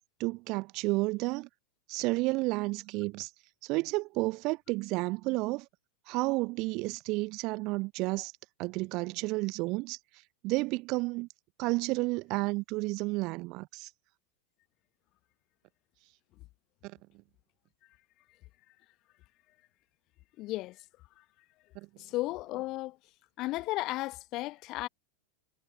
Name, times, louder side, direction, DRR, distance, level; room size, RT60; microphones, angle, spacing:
voice 1, 0.0-1.5 1.9-3.3 3.6-5.7 6.1-8.3 8.6-10.0 10.4-11.3 11.6-13.9 16.8-16.9 21.8-21.9, right 23 dB, 40° right, 1.0 m, -31 dB
voice 2, 20.4-20.8 21.2-21.3 22.0-23.0 23.4-24.9, left 19 dB, 40° left, 1.5 m, -34 dB
figure-of-eight pair, 90°, 0 cm